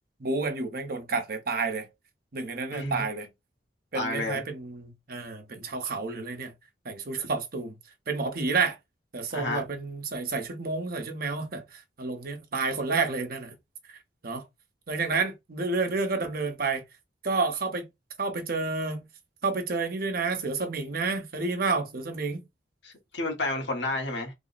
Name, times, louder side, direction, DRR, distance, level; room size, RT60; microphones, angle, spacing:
voice 1, 0.2-1.9 2.3-3.3 3.9-6.5 6.8-7.8 8.1-8.8 9.1-13.5 13.9-14.0 14.2-14.4 14.9-16.8 17.2-17.9 18.2-19.0 19.4-22.4, right 4 dB, 55° right, 0.9 m, -30 dB
voice 2, 2.7-3.1 3.9-4.4 9.3-9.6 22.8-24.3, left 2 dB, 85° left, 1.4 m, -31 dB
3.4 x 2.1 x 4.0 m
head